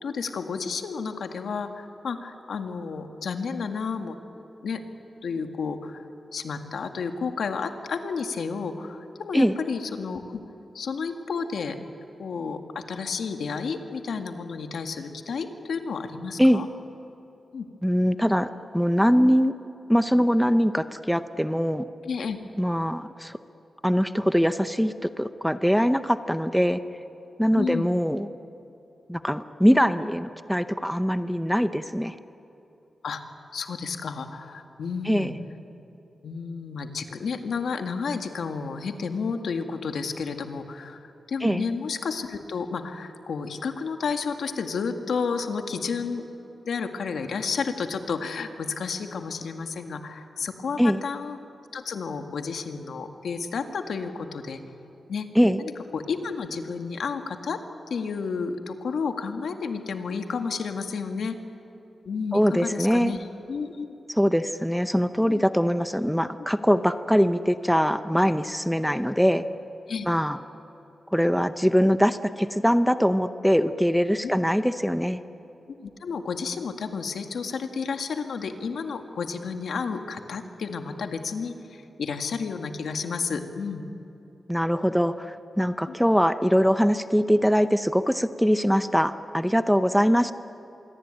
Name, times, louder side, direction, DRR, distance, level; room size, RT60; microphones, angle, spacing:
voice 1, 0.0-4.2 4.6-4.8 5.2-6.0 6.3-10.4 10.7-11.8 12.2-16.7 17.5-17.7 22.0-22.4 27.5-27.9 33.0-33.2 33.5-35.3 36.2-46.3 46.6-51.4 51.7-54.6 55.1-55.3 55.6-57.6 57.9-61.4 62.1-63.2 63.5-63.9 65.3-65.4 69.9-70.1 74.2-74.3 75.8-83.9 85.9-86.0, left 5 dB, 85° left, 6 dB, 1.9 m, -31 dB
voice 2, 17.8-19.5 19.9-21.8 22.6-23.4 23.8-26.8 27.4-28.3 29.1-32.2 35.0-35.3 41.4-41.6 50.8-51.0 55.3-55.6 62.3-63.1 64.2-69.4 70.1-70.4 71.1-75.2 84.5-90.3, equal, ahead, 10 dB, 0.7 m, -22 dB
26.5 x 22.5 x 9.1 m, 3.0 s
wide cardioid pair, 160°, 0 cm